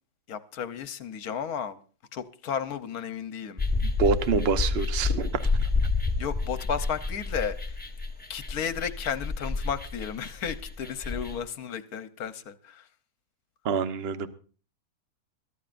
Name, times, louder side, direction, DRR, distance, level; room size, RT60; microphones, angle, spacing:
voice 1, 0.3-1.8 2.1-3.6 6.2-7.8 8.3-12.9, left 7 dB, 75° left, 1.4 m, -33 dB
sound 1, 3.6-11.4, left 3 dB, 5° left, 1.5 m, -29 dB
voice 2, 4.0-5.4 13.6-14.3, right 5 dB, 45° right, 1.1 m, -26 dB
23.5 x 14.0 x 2.6 m
omnidirectional pair, 1.6 m